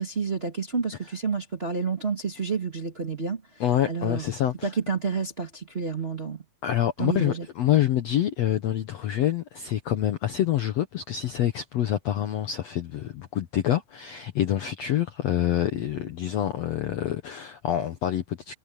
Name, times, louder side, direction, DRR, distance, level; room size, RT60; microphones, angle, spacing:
voice 1, 0.0-4.2 4.6-6.4 7.0-7.4, right 5 dB, 25° right, 1.3 m, -29 dB
voice 2, 3.6-4.7 6.6-18.5, left 11 dB, 90° left, 1.4 m, -26 dB
omnidirectional pair, 4.5 m